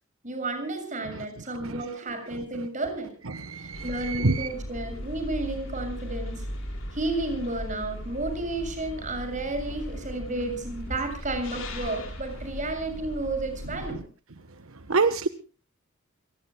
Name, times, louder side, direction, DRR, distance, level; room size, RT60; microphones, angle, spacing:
voice 1, 0.2-3.1 3.6-6.5 6.9-14.0, right 2 dB, 35° right, 7 dB, 6.9 m, -32 dB
voice 2, 3.3-4.5 14.9-15.3, right 3 dB, 80° right, 11 dB, 1.2 m, -25 dB
sound 1, 3.7-13.9, equal, 65° left, 5.6 m, -38 dB
30.0 x 18.5 x 2.3 m, 0.36 s
head